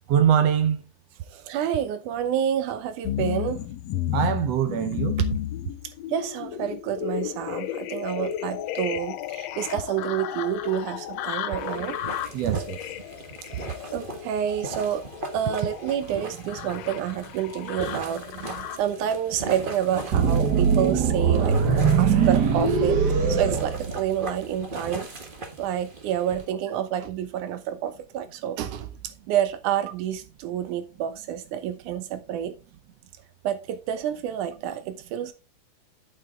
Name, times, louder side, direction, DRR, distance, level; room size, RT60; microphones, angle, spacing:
voice 1, 0.1-0.8 4.1-5.3 12.3-12.8, right 9 dB, 70° right, 1.7 m, -22 dB
voice 2, 1.3-3.7 5.8-12.0 13.6-15.0 15.3-21.6 22.0-23.0 23.3-25.1 25.6-32.6 33.4-35.3, right 10 dB, 90° right, 2.4 m, -29 dB
sound 1, 3.0-19.0 19.6-20.3 20.7-20.9, left 11 dB, 75° left, 1.7 m, -33 dB
sound 2, 11.6-26.4, right 2 dB, 35° right, 0.8 m, -39 dB
sound 3, 20.1-24.4, right 6 dB, 55° right, 1.2 m, -21 dB
8.6 x 6.8 x 3.7 m
omnidirectional pair, 3.4 m